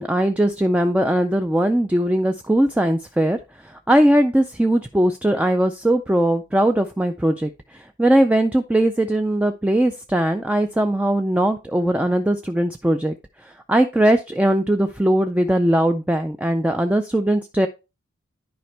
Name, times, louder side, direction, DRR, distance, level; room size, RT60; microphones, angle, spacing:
voice 1, 0.0-13.1 13.4-17.7, right 1 dB, 5° right, 7 dB, 0.3 m, -20 dB
10.5 x 5.1 x 3.3 m, 0.27 s
head